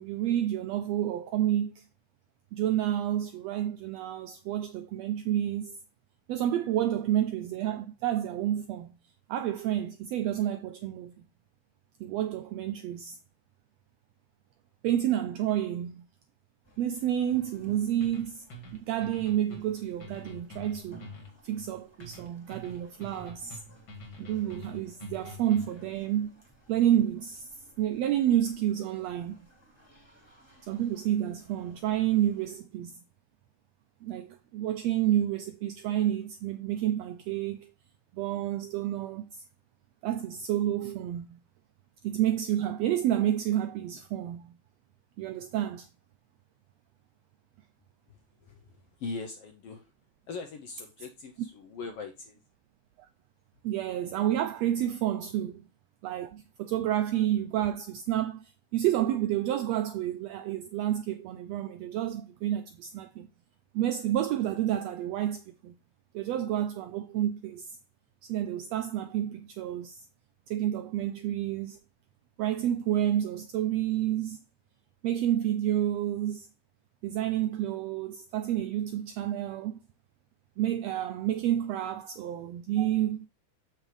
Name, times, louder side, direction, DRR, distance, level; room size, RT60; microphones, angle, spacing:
voice 1, 0.0-1.8 2.5-5.8 6.3-8.9 9.3-11.1 12.0-13.2 14.8-16.0 16.8-18.4 18.7-21.0 21.4-23.6 24.2-26.3 26.7-27.5 27.8-29.4 30.6-32.9 34.0-37.7 38.1-39.4 40.0-41.4 42.0-44.5 45.2-45.9 53.6-55.5 56.0-63.3 63.7-65.7 66.1-67.7 68.2-70.1 70.5-71.8 72.4-74.4 75.0-76.5 77.0-79.8 80.6-83.3, right 11 dB, 85° right, 1.5 m, -29 dB
sound 1, 16.6-32.6, right 1 dB, 10° left, 2.2 m, -59 dB
sound 2, 18.0-25.9, left 1 dB, 40° left, 2.1 m, -46 dB
voice 2, 48.1-49.9 50.3-52.4 55.4-55.5 81.8-81.9, left 4 dB, 75° left, 1.4 m, -41 dB
7.3 x 6.2 x 3.2 m
omnidirectional pair, 3.5 m